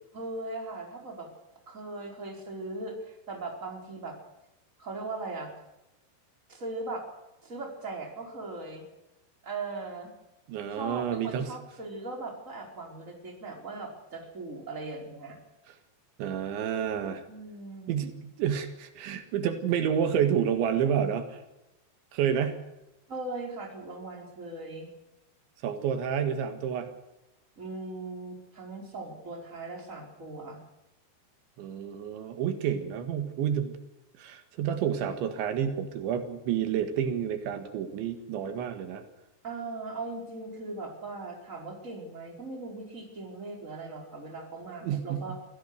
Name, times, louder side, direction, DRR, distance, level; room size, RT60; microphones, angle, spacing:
voice 1, 0.1-1.3 1.7-4.2 4.8-5.5 6.5-7.0 7.4-8.8 9.4-10.1 10.7-15.4 17.3-18.0 23.1-24.9 27.6-30.6 39.4-45.4, right 3 dB, 15° right, 1 dB, 4.6 m, -39 dB
voice 2, 10.5-11.5 16.2-17.2 17.9-21.4 22.1-22.6 25.6-26.9 31.6-33.8 34.2-39.0 44.8-45.3, right 8 dB, 85° right, 8 dB, 4.1 m, -29 dB
25.5 x 16.5 x 6.7 m, 0.91 s
omnidirectional pair, 5.2 m